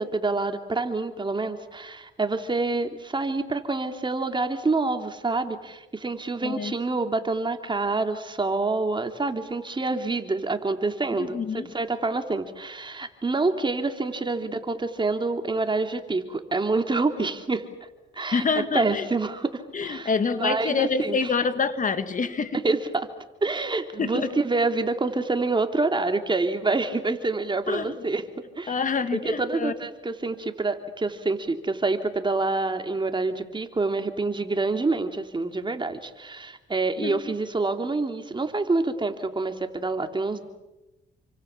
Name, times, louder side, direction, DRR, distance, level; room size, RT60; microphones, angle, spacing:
voice 1, 0.0-17.6 18.1-20.1 20.4-21.2 22.6-23.1 23.4-28.2 28.6-28.7 29.1-40.5, right 3 dB, 25° right, 6 dB, 3.2 m, -27 dB
voice 2, 6.4-6.7 11.1-11.7 18.3-19.1 19.7-22.6 24.0-24.3 27.7-27.9 28.7-29.7 37.0-37.3, left 5 dB, 40° left, 10 dB, 2.0 m, -27 dB
29.0 x 25.5 x 7.4 m, 1.0 s
cardioid pair, 90°, 20 cm